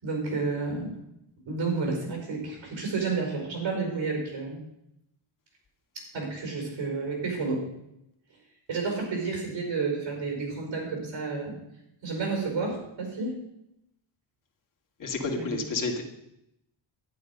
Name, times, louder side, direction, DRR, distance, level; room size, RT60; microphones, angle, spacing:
voice 1, 0.0-0.9 1.5-4.6 6.0-7.7 8.7-11.5 12.0-13.4 15.3-15.4, right 4 dB, 65° right, 1 dB, 5.3 m, -30 dB
voice 2, 15.0-16.0, left 3 dB, 40° left, 1 dB, 2.2 m, -30 dB
11.5 x 9.2 x 5.3 m, 0.80 s
cardioid pair, 120°, 50 cm